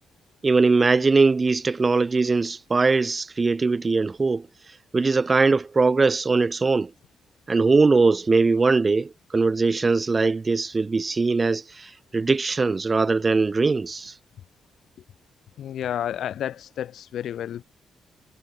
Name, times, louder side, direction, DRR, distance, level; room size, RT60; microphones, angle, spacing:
voice 1, 0.4-4.5 4.9-6.9 7.5-14.1, right 4 dB, 30° right, 3.2 m, -21 dB
voice 2, 15.6-17.6, left 10 dB, 75° left, 2.1 m, -31 dB
cardioid pair, 95°, 0 cm